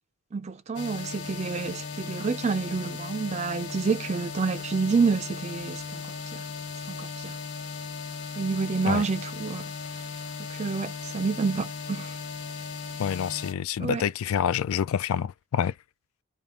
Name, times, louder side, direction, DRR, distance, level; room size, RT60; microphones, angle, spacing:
voice 1, 0.3-6.0 6.3-6.4 6.9-7.4 8.4-9.6 10.5-12.1 13.8-14.0, right 4 dB, 30° right, 0.3 m, -28 dB
sound 1, 0.7-13.5, left 5 dB, 50° left, 1.3 m, -37 dB
voice 2, 13.0-15.7, left 8 dB, 80° left, 0.3 m, -27 dB
3.4 x 2.4 x 4.1 m
head